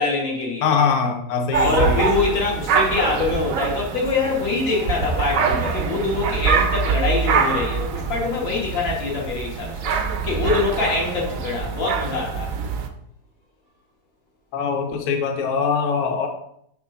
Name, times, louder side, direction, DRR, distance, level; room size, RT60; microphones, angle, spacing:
voice 1, 0.0-0.7 1.6-9.9 10.2-12.5, left 4 dB, 80° left, -3 dB, 2.3 m, -24 dB
voice 2, 0.6-2.1 14.5-16.3, left 5 dB, 55° left, 4 dB, 0.9 m, -22 dB
sound 1, 1.5-12.9, right 5 dB, 70° right, 0.8 m, -24 dB
4.9 x 3.6 x 5.7 m, 0.71 s
omnidirectional pair, 2.0 m